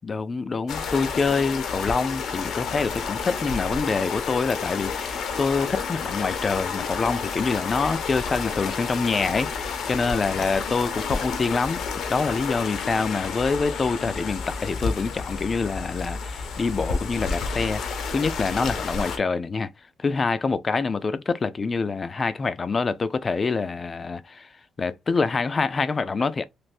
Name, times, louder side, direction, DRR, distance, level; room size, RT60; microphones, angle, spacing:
voice 1, 0.0-11.8 12.1-17.8 18.1-19.7 20.0-24.5 24.8-26.4, left 4 dB, 30° left, 0.4 m, -26 dB
sound 1, 0.7-19.2, left 5 dB, 65° left, 0.7 m, -30 dB
3.3 x 2.5 x 2.5 m
cardioid pair, 135°, 0 cm